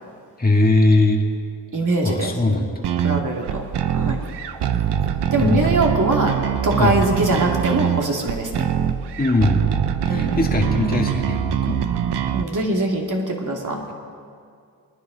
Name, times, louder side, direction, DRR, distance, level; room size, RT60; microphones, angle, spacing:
voice 1, 0.4-1.3 2.0-2.7 5.4-5.7 6.7-6.9 9.2-9.7 10.1-11.8, left 2 dB, 20° left, 0 dB, 1.9 m, -20 dB
voice 2, 1.7-2.6 3.0-3.6 3.9-4.2 5.3-6.3 6.6-8.7 10.1-10.5 12.3-13.8, right 2 dB, 50° right, 0 dB, 2.6 m, -22 dB
sound 1, 2.8-12.4, right 9 dB, 80° right, 0.7 m, -23 dB
23.0 x 10.0 x 4.0 m, 2.3 s
supercardioid pair, 50°, 41 cm